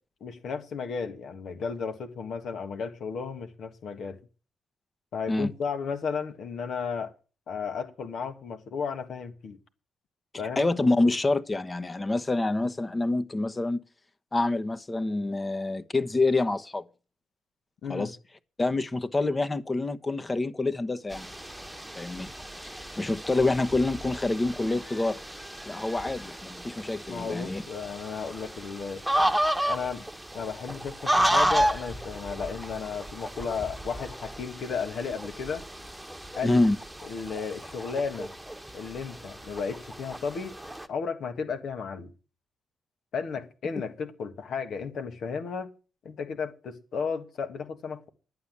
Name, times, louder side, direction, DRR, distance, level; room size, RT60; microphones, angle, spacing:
voice 1, 0.2-4.2 5.1-7.1 7.5-9.6 10.4-10.7 17.8-18.1 27.1-29.0 29.7-30.1 30.3-35.6 36.3-36.6 37.1-38.3 38.7-40.5 40.9-42.1 43.1-45.7 46.0-48.1, left 5 dB, 70° left, 1.6 m, -34 dB
voice 2, 10.6-13.8 14.3-16.8 17.9-18.1 18.6-21.3 22.0-22.3 22.6-25.2 25.7-27.6 36.4-36.8, left 2 dB, 25° left, 1.0 m, -27 dB
sound 1, 21.1-40.9, right 1 dB, 5° right, 1.3 m, -32 dB
11.5 x 8.4 x 7.3 m
supercardioid pair, 55°, 0 cm